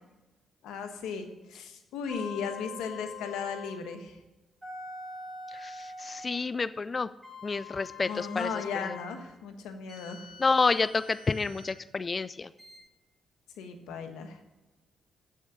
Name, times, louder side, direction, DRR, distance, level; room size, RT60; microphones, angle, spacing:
voice 1, 0.6-4.2 8.0-10.3 13.6-14.4, left 6 dB, 90° left, 6 dB, 1.2 m, -36 dB
sound 1, 2.1-3.9 4.6-6.5 7.2-9.1 9.9-11.8 12.6-12.8, left 3 dB, 10° right, 3.3 m, -44 dB
voice 2, 5.5-7.1 7.4-9.0 10.4-12.5, left 4 dB, 40° left, 15 dB, 0.4 m, -29 dB
7.7 x 6.4 x 6.2 m, 1.1 s
cardioid pair, 65°, 0 cm